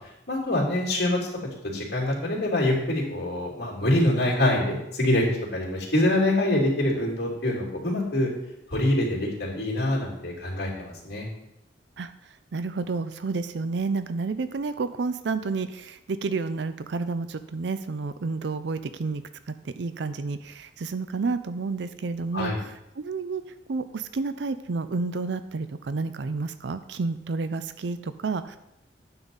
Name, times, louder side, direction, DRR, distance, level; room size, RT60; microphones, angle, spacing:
voice 1, 0.3-1.2 1.7-5.3 5.5-8.3 8.7-11.3 22.3-22.6, left 1 dB, 65° left, -2 dB, 2.9 m, -25 dB
voice 2, 12.5-23.4 23.7-28.6, right 4 dB, 75° right, 12 dB, 0.5 m, -30 dB
9.4 x 4.0 x 7.1 m, 0.86 s
head